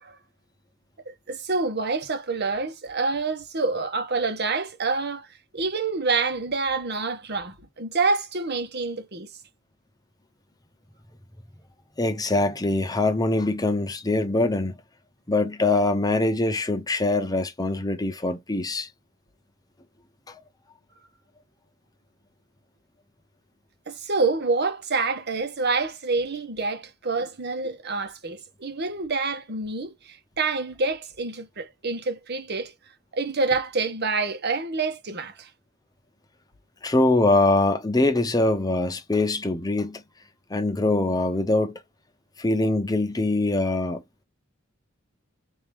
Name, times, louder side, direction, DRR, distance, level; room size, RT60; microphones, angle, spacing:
voice 1, 1.1-5.3 5.5-9.3 23.9-32.7 33.1-35.5, right 3 dB, 55° right, 1.2 m, -27 dB
voice 2, 12.0-14.7 15.3-18.9 20.3-20.4 36.8-40.0 40.5-41.8 42.4-44.0, left 2 dB, 20° left, 0.8 m, -23 dB
4.6 x 3.0 x 3.5 m
head